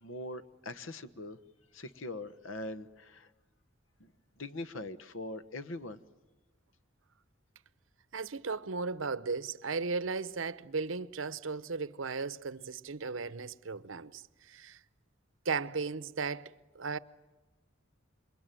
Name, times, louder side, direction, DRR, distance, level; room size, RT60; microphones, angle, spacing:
voice 1, 0.0-1.4 1.7-3.3 4.0-4.1 4.4-6.0, left 2 dB, 85° left, 1.2 m, -42 dB
voice 2, 8.1-14.8 15.4-17.0, right 4 dB, 80° right, 0.8 m, -36 dB
28.0 x 23.0 x 9.2 m
head